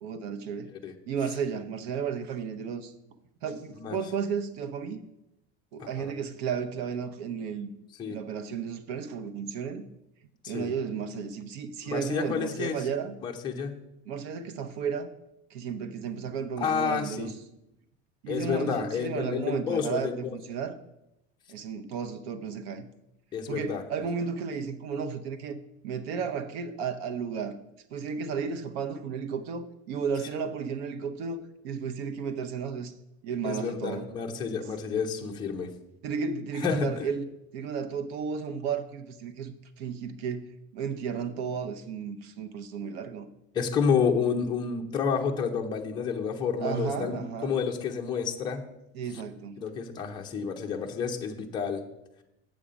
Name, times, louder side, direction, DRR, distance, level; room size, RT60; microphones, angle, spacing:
voice 1, 0.0-0.7 1.1-2.9 3.4-5.0 5.7-7.7 8.1-9.9 10.5-13.2 14.1-15.1 15.5-17.3 18.2-20.8 21.5-22.9 23.5-25.6 25.8-27.6 27.9-32.9 33.2-34.1 36.0-37.3 37.5-43.3 46.6-47.5 48.9-49.6, right 6 dB, 85° right, 9 dB, 0.7 m, -33 dB
voice 2, 5.8-6.1 8.0-8.2 10.4-10.7 11.8-12.8 13.2-13.8 16.6-17.3 18.3-20.3 23.3-23.8 33.4-35.7 36.5-37.1 43.5-48.6 49.6-51.8, left 6 dB, 15° left, 1 dB, 0.6 m, -30 dB
7.7 x 7.0 x 5.0 m, 0.87 s
cardioid pair, 175°, 30 cm